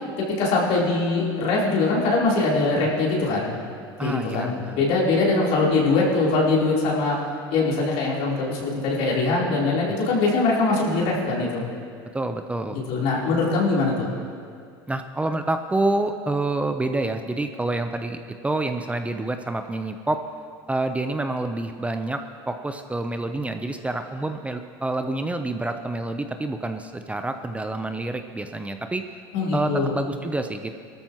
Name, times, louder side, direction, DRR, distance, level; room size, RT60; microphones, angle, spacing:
voice 1, 0.2-3.5 4.0-7.2 7.5-11.6 12.7-13.9 29.3-29.9, left 3 dB, 65° left, -5 dB, 3.8 m, -22 dB
voice 2, 4.0-4.8 12.1-12.8 14.9-18.2 18.4-20.2 20.7-29.0 29.5-30.8, right 2 dB, 10° right, 7 dB, 0.7 m, -27 dB
19.0 x 13.5 x 3.1 m, 2.2 s
hypercardioid pair, 90°, 12 cm